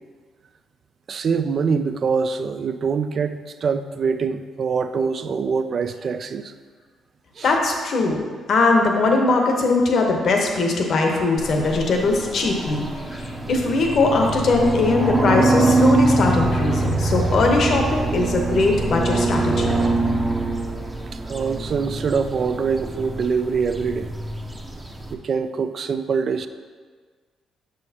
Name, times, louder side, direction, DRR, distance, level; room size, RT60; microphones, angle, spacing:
voice 1, 1.1-6.5 7.4-7.5 21.1-24.1 25.1-26.5, right 5 dB, 50° right, 11 dB, 0.3 m, -24 dB
voice 2, 7.4-12.9 13.1-19.8, left 3 dB, 60° left, 2 dB, 1.0 m, -20 dB
sound 1, 11.4-25.1, right 2 dB, 15° right, 0.7 m, -24 dB
6.3 x 6.3 x 2.9 m, 1.5 s
cardioid pair, 90°, 0 cm